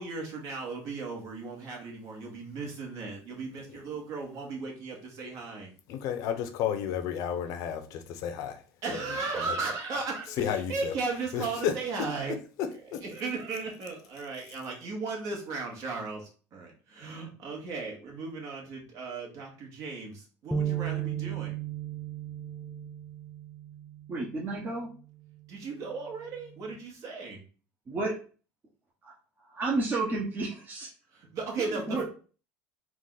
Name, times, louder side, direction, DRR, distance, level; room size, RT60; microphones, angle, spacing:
voice 1, 0.0-5.7 8.8-12.4 13.0-21.6 25.5-27.4 31.1-32.0, right 4 dB, 55° right, 1.5 m, -36 dB
voice 2, 5.9-8.6 8.9-9.6 10.4-11.0 11.3-11.7 12.6-13.0, left 9 dB, 70° left, 0.7 m, -32 dB
sound 1, 20.5-24.8 25.3-25.5 26.3-26.8, right 9 dB, 10° left, 0.4 m, -36 dB
voice 3, 24.1-24.9 27.9-28.2 29.0-30.9 31.7-32.0, right 3 dB, 30° right, 0.9 m, -32 dB
3.8 x 2.4 x 3.9 m
supercardioid pair, 110°, 6 cm